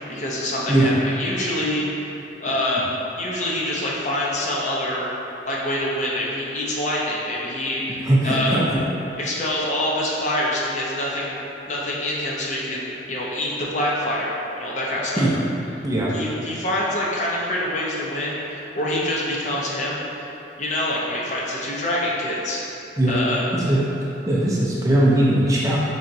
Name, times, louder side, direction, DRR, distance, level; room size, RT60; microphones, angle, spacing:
voice 1, 0.0-1.8 2.4-2.9 3.2-5.1 5.4-8.6 9.1-11.4 11.7-14.3 14.6-15.3 16.1-20.3 20.6-22.6 23.1-23.4, left 1 dB, 40° left, -4 dB, 0.5 m, -26 dB
voice 2, 8.0-8.6 15.2-15.3 15.8-16.1 23.0-23.2 23.5-23.8 24.3-25.8, right 1 dB, 15° right, -6 dB, 0.4 m, -19 dB
4.0 x 3.4 x 2.6 m, 2.9 s
head